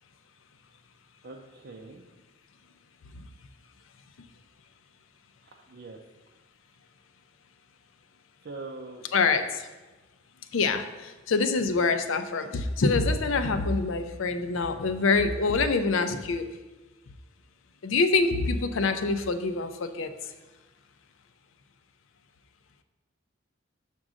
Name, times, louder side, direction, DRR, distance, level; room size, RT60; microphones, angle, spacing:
voice 1, 1.2-2.0 5.7-6.0 8.4-9.0 10.7-10.9, right 3 dB, 55° right, 0 dB, 0.5 m, -42 dB
voice 2, 9.1-9.7 10.5-10.8 11.3-16.5 17.8-20.1, left 4 dB, 75° left, 9 dB, 0.5 m, -25 dB
6.2 x 3.7 x 6.1 m, 1.2 s
head